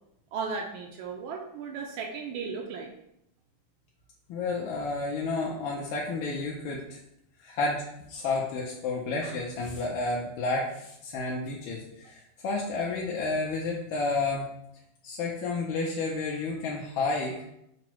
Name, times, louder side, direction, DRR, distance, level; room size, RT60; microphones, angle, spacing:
voice 1, 0.3-2.9, right 5 dB, 80° right, 0 dB, 1.4 m, -35 dB
voice 2, 4.3-7.0 7.4-12.2 12.4-14.4 15.0-17.4, left 3 dB, 80° left, -3 dB, 1.4 m, -31 dB
6.0 x 2.0 x 4.4 m, 0.79 s
omnidirectional pair, 2.2 m